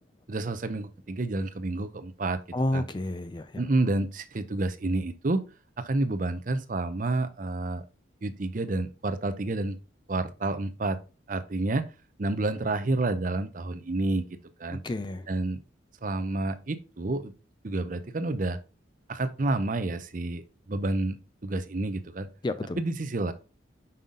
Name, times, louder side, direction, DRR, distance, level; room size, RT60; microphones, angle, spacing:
voice 1, 0.3-2.4 2.7-2.8 3.6-5.5 5.8-7.8 8.2-9.8 10.1-11.0 11.3-11.9 12.2-14.8 15.3-15.6 16.0-17.3 17.6-18.6 19.1-22.3 22.8-23.3, right 2 dB, 40° right, 11 dB, 0.6 m, -29 dB
voice 2, 2.5-3.6 14.7-15.3 22.4-22.8, left 1 dB, 25° left, 11 dB, 0.4 m, -30 dB
5.6 x 5.4 x 3.7 m, 0.33 s
head